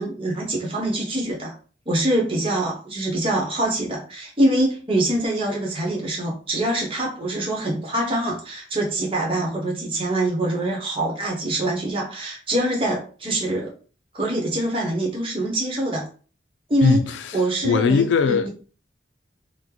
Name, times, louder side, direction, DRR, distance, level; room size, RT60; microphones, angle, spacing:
voice 1, 0.0-1.5 1.9-13.7 14.1-16.1 16.7-17.0 17.3-18.5, right 1 dB, 30° right, 0.9 m, -24 dB
voice 2, 16.8-18.5, left 5 dB, 85° left, 0.4 m, -20 dB
3.0 x 2.1 x 3.8 m
head